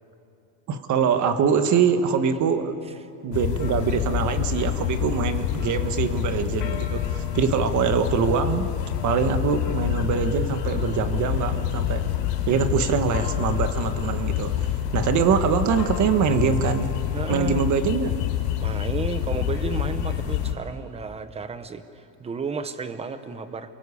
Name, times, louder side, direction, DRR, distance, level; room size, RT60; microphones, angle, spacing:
voice 1, 0.7-2.8 3.2-8.7 9.0-12.1 12.5-14.7 14.9-16.9 17.3-18.1, right 6 dB, 35° right, 8 dB, 1.6 m, -23 dB
sound 1, 3.3-20.5, left 11 dB, 85° left, 5.0 m, -27 dB
voice 2, 17.1-17.6 18.6-23.7, right 5 dB, 10° right, 11 dB, 0.9 m, -32 dB
28.5 x 23.0 x 8.4 m, 2.6 s
cardioid pair, 165°, 49 cm